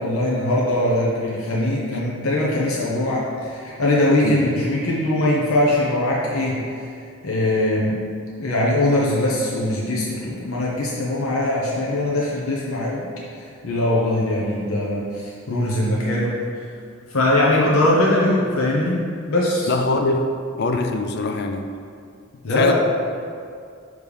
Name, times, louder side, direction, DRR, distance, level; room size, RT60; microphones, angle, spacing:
voice 1, 0.0-6.6 7.2-8.0 8.4-13.1 13.4-16.3 16.6-16.7 17.1-19.0 19.3-19.7 22.4-22.7, left 1 dB, 80° left, -5 dB, 1.0 m, -21 dB
voice 2, 19.7-20.3 20.6-21.7 22.5-22.7, left 3 dB, 50° left, 5 dB, 0.5 m, -22 dB
6.6 x 3.2 x 5.3 m, 2.3 s
head